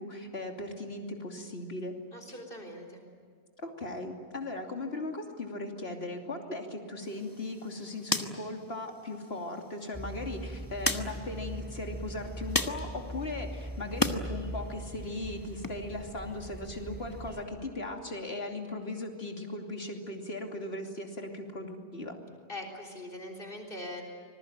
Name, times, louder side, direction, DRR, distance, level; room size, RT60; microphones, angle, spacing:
voice 1, 0.0-1.9 2.3-2.4 3.6-22.2, left 2 dB, 80° left, 3 dB, 3.2 m, -38 dB
voice 2, 2.1-3.0 22.5-24.0, left 1 dB, 60° left, 1 dB, 3.9 m, -42 dB
sound 1, 7.0-14.2 14.6-15.7, left 2 dB, 20° left, 1.3 m, -37 dB
sound 2, 9.9-17.4, right 1 dB, 10° right, 4.1 m, -41 dB
26.0 x 21.0 x 9.0 m, 2.2 s
omnidirectional pair, 1.1 m